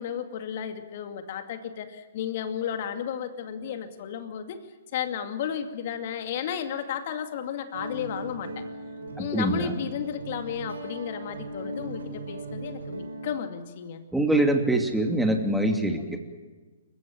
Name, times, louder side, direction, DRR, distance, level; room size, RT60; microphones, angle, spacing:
voice 1, 0.0-4.6 4.9-8.6 9.2-14.0, left 8 dB, 45° left, 7 dB, 2.3 m, -33 dB
Guitar, 7.7-13.4, right 1 dB, 70° right, 5.0 m, -38 dB
voice 2, 9.2-9.7 14.1-16.2, right 1 dB, ahead, 3 dB, 2.6 m, -24 dB
29.0 x 16.0 x 9.4 m, 1.3 s
figure-of-eight pair, 125°, 0 cm